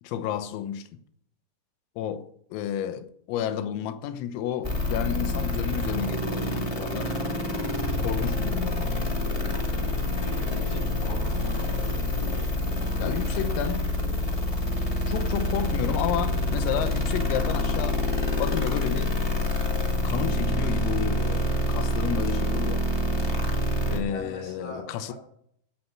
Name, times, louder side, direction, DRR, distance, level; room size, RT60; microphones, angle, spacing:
voice 1, 0.0-0.9 2.0-7.1 8.0-8.9 13.0-13.9 15.1-18.0 18.4-19.2 20.0-22.9 23.9-25.1, left 10 dB, 90° left, 3.7 m, -31 dB
sound 1, 4.6-24.0, left 1 dB, 55° left, 0.4 m, -27 dB
voice 2, 10.2-12.0 24.1-25.1, left 2 dB, 35° left, 7.7 m, -41 dB
17.5 x 8.0 x 5.9 m
omnidirectional pair, 5.8 m